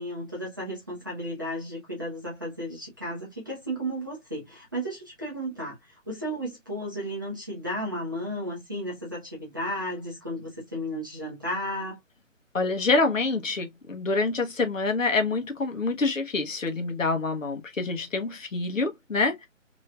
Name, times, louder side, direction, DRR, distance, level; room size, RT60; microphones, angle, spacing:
voice 1, 0.0-12.0, equal, 15° right, 0.6 m, -34 dB
voice 2, 12.5-19.5, left 3 dB, 75° left, 1.2 m, -26 dB
3.1 x 3.0 x 2.3 m
figure-of-eight pair, 155°, 39 cm